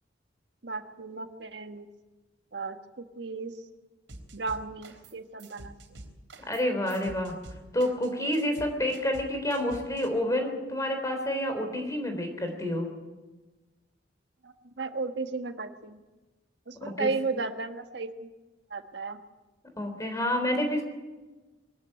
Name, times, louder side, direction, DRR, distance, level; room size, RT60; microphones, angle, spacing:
voice 1, 0.6-1.9 2.5-3.5 4.3-6.1 14.4-16.0 16.7-18.3 18.7-19.2, right 4 dB, 70° right, 7 dB, 1.5 m, -35 dB
sound 1, 4.1-5.1 5.4-10.1, right 2 dB, 85° right, 3.6 m, -47 dB
voice 2, 6.5-7.3 7.7-12.9 16.8-17.1 19.8-20.8, left 1 dB, 15° left, 5 dB, 3.6 m, -29 dB
22.5 x 13.5 x 9.0 m, 1.2 s
head